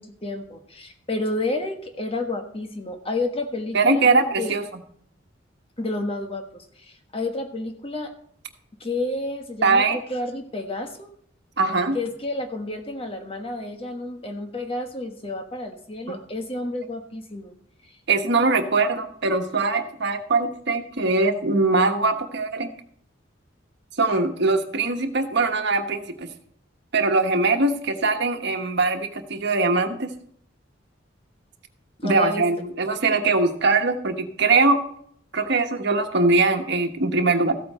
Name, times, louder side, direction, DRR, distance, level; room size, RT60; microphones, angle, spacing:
voice 1, 0.0-4.1 4.4-4.5 5.8-8.1 8.8-11.1 11.9-17.5 32.0-32.5, left 2 dB, 30° left, 5 dB, 1.3 m, -30 dB
voice 2, 3.7-4.6 9.6-10.0 11.6-12.0 16.1-16.2 18.1-22.7 24.0-26.3 26.9-30.2 32.0-34.8 35.3-37.5, right 3 dB, 60° right, 5 dB, 1.3 m, -21 dB
14.5 x 8.5 x 4.3 m, 0.65 s
head